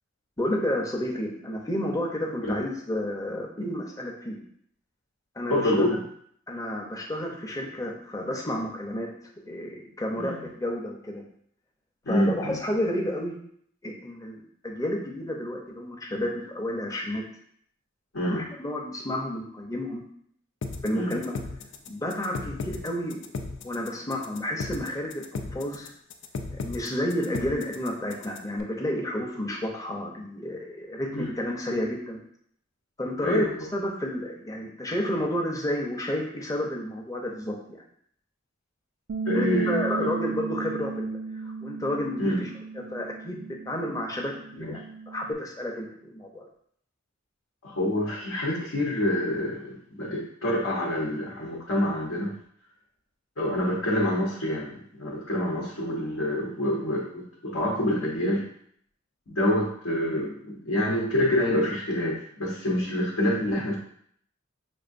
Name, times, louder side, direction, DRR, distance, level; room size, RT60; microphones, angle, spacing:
voice 1, 0.4-4.4 5.4-6.0 6.5-9.1 9.5-11.2 12.1-13.4 13.8-17.2 18.2-20.0 20.8-21.3 21.9-23.2 23.6-25.9 26.6-32.2 33.0-33.4 33.7-37.8 39.3-41.2 41.6-42.5 42.9-46.4, left 1 dB, 15° left, 0 dB, 0.6 m, -31 dB
voice 2, 5.5-6.0 10.2-10.4 12.1-12.6 18.1-18.4 20.9-21.2 31.1-31.3 33.2-33.5 39.3-40.1 42.2-42.4 44.6-44.7 47.6-52.3 53.4-58.4 59.3-63.8, left 1 dB, 80° left, -3 dB, 0.8 m, -27 dB
sound 1, 20.6-28.6, left 3 dB, 60° left, 0.4 m, -36 dB
Bass guitar, 39.1-45.3, right 4 dB, 80° right, 0.4 m, -35 dB
6.1 x 2.5 x 2.5 m, 0.65 s
head